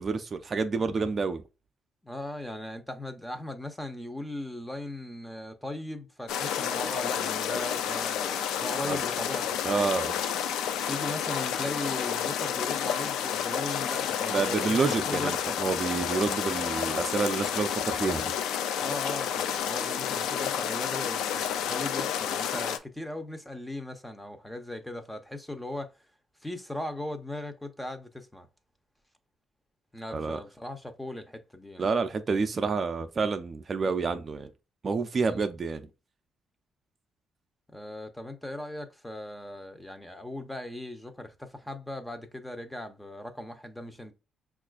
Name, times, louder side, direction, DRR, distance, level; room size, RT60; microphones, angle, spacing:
voice 1, 0.0-1.4 8.8-9.0 9.6-10.2 14.3-18.3 30.1-30.4 31.8-34.5 34.8-35.8, right 4 dB, 40° right, 0.4 m, -28 dB
voice 2, 2.0-9.6 10.9-15.6 18.8-25.9 26.4-28.5 29.9-31.9 35.2-35.4 37.7-44.1, left 1 dB, 10° left, 0.6 m, -38 dB
sound 1, 6.3-22.8, left 9 dB, 90° left, 0.3 m, -30 dB
5.6 x 2.4 x 2.3 m
cardioid pair, 90°, 0 cm